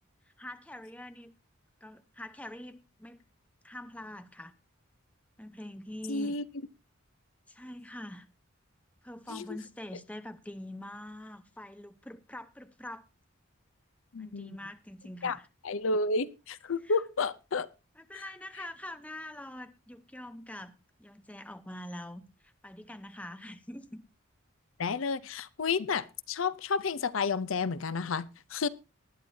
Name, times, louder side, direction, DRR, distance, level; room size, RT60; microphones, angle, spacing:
voice 1, 0.4-1.3 1.8-3.2 3.6-4.5 5.4-6.4 7.5-8.3 9.0-13.0 14.2-15.5 16.8-17.0 18.0-20.7 21.0-24.0, left 1 dB, 5° left, 0.8 m, -44 dB
voice 2, 6.1-6.4 9.3-9.4 14.1-14.6 15.2-15.4 15.6-17.7 18.1-18.2 24.8-28.7, left 4 dB, 75° left, 0.6 m, -31 dB
19.5 x 10.5 x 2.7 m
head